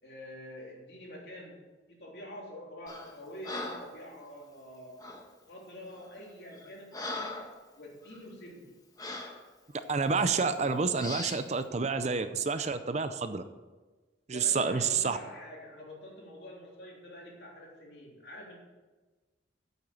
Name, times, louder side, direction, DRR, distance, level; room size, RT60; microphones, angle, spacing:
voice 1, 0.0-1.6 1.9-4.9 5.5-7.5 7.7-8.7 14.3-18.6, left 1 dB, 60° left, -2 dB, 3.3 m, -46 dB
Breathing, 2.9-3.1 3.4-4.0 5.0-5.3 5.9-6.1 6.5-7.6 8.0-8.2 9.0-9.4 10.1-10.3 11.0-11.5, left 2 dB, 20° left, 1.4 m, -40 dB
voice 2, 9.7-13.5 14.3-15.2, right 5 dB, 40° right, 11 dB, 0.6 m, -29 dB
8.8 x 8.2 x 7.0 m, 1.3 s
head